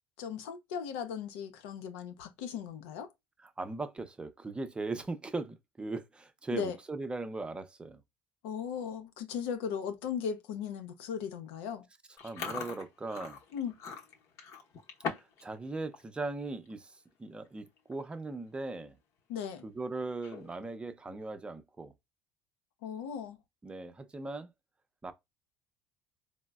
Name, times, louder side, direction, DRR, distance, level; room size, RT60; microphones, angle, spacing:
voice 1, 0.2-3.1 6.5-6.8 8.4-11.9 13.5-13.7 19.3-19.7 22.8-23.4, left 7 dB, 85° left, 0.7 m, -37 dB
voice 2, 3.4-8.0 12.2-13.4 15.1-16.9 17.2-19.0 19.6-21.9 23.6-24.5 25.0-25.1, right 3 dB, 15° right, 0.6 m, -39 dB
Chewing mastication, 12.2-15.4 15.7-16.0 16.5-16.7 17.5-17.6 17.8-18.1 18.5-18.6 20.1-20.7, left 5 dB, 55° left, 0.8 m, -41 dB
3.8 x 2.0 x 2.2 m
supercardioid pair, 95°, 6 cm